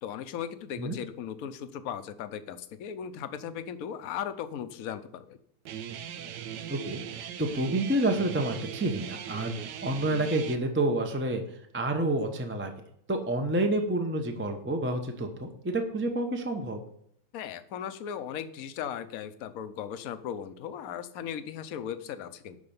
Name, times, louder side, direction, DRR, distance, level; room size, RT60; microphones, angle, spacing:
voice 1, 0.0-5.4 17.3-22.6, left 9 dB, 60° left, 12 dB, 1.1 m, -37 dB
Guitar, 5.7-10.6, right 9 dB, 80° right, 1.4 m, -39 dB
voice 2, 6.7-11.4 11.7-12.7 13.1-16.8, right 1 dB, 10° right, 4 dB, 0.7 m, -29 dB
11.5 x 4.5 x 7.1 m, 0.70 s
omnidirectional pair, 1.9 m